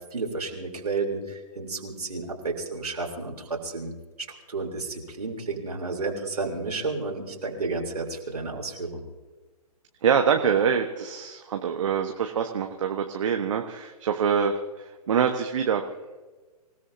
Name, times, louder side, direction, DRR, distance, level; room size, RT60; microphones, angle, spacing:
voice 1, 0.1-3.9 4.5-9.0, right 3 dB, 75° right, 0 dB, 3.6 m, -31 dB
voice 2, 10.0-15.8, right 7 dB, 55° right, 4 dB, 1.3 m, -25 dB
26.5 x 17.0 x 2.8 m, 1.3 s
figure-of-eight pair, 125°, 20 cm